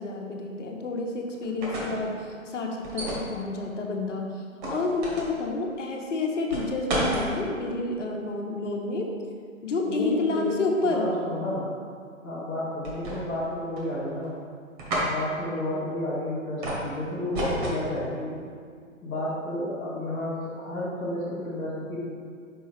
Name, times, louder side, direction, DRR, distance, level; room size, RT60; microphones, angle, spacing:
voice 1, 0.0-4.4 4.7-9.1 9.6-11.1, left 3 dB, 60° left, 1 dB, 1.1 m, -29 dB
sound 1, 1.4-2.0 2.8-3.3 4.6-5.3 6.5-7.3 12.8-13.5 13.8-14.3 14.8-15.1 16.6-16.9 17.3-17.8, right 1 dB, 35° right, 1.7 m, -30 dB
voice 2, 9.8-11.7 12.2-14.4 15.0-18.4 19.0-22.0, left 1 dB, 5° left, -12 dB, 0.4 m, -31 dB
5.5 x 4.5 x 4.8 m, 2.1 s
figure-of-eight pair, 135°, 41 cm